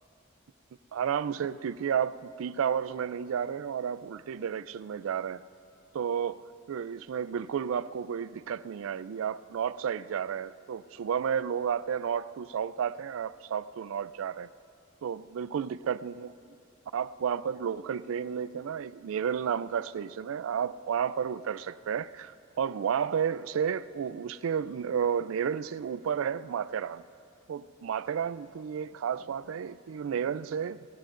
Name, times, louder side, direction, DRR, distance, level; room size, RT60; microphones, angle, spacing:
voice 1, 0.9-5.4 5.9-6.4 6.7-14.5 15.0-16.3 16.9-27.0 27.5-30.8, right 7 dB, 80° right, 0.4 m, -32 dB
27.5 x 13.0 x 2.5 m
head